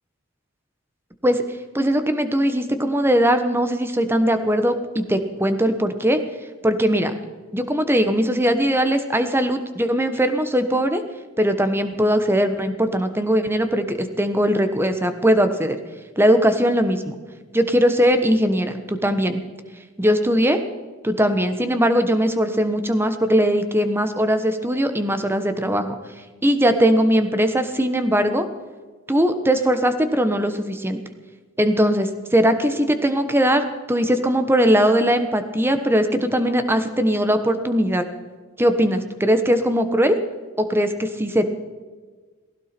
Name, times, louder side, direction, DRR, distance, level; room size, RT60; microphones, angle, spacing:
voice 1, 1.7-6.2 6.6-7.1 7.5-11.0 11.4-15.8 16.2-17.1 17.5-19.4 20.0-20.6 21.0-26.0 26.4-28.4 29.1-31.0 31.6-38.0 38.6-40.2 40.6-41.4, equal, 10° right, 8 dB, 1.2 m, -20 dB
19.0 x 16.5 x 4.5 m, 1.4 s
head